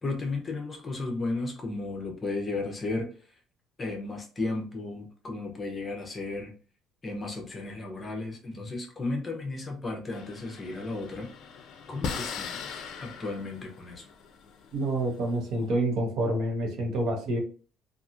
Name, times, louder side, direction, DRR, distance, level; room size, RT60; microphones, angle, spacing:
voice 1, 0.0-3.1 3.8-6.5 7.0-11.3 11.9-14.1, left 3 dB, 20° left, 2 dB, 0.7 m, -34 dB
sound 1, 10.1-15.6, left 6 dB, 60° left, 0.4 m, -40 dB
voice 2, 14.7-17.4, right 1 dB, 70° right, 0 dB, 1.0 m, -28 dB
2.8 x 2.4 x 2.4 m, 0.38 s
cardioid pair, 140°, 0 cm